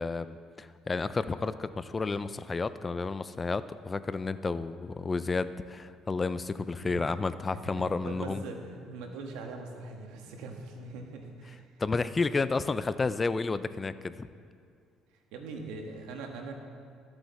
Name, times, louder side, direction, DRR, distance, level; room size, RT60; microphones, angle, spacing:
voice 1, 0.0-8.4 11.8-14.3, left 4 dB, 20° left, 14 dB, 0.3 m, -31 dB
voice 2, 6.8-11.7 15.3-16.5, right 3 dB, 85° right, 3 dB, 1.3 m, -42 dB
13.0 x 8.0 x 4.1 m, 2.3 s
cardioid pair, 120°, 0 cm